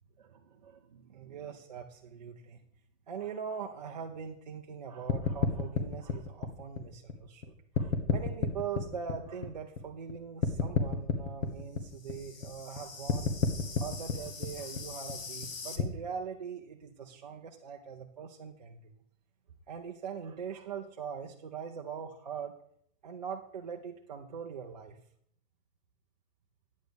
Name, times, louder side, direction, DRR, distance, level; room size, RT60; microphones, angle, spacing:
voice 1, 0.2-2.6 3.1-13.4 13.8-19.0 19.7-22.5 23.0-25.0, right 7 dB, 35° right, 1 dB, 0.4 m, -42 dB
sound 1, 5.1-7.4 7.7-10.1 10.4-15.8, left 5 dB, 80° left, 1.4 m, -32 dB
9.1 x 8.0 x 3.4 m, 0.67 s
hypercardioid pair, 165°, 40 cm